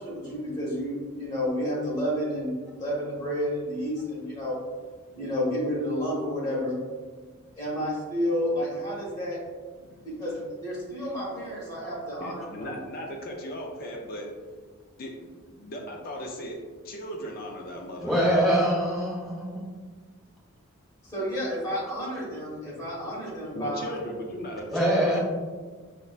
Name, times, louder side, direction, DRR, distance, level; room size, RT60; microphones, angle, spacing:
voice 1, 0.0-4.6 5.1-6.8 7.6-9.4 10.0-12.7 21.0-24.0, equal, 15° left, -7 dB, 1.2 m, -30 dB
voice 2, 9.8-10.2 12.2-14.3 14.9-16.6 16.8-18.6 23.5-25.2, equal, 40° left, 1 dB, 0.4 m, -37 dB
voice 3, 18.0-19.6 24.7-25.2, equal, ahead, -7 dB, 0.9 m, -24 dB
5.5 x 2.2 x 2.4 m, 1.5 s
head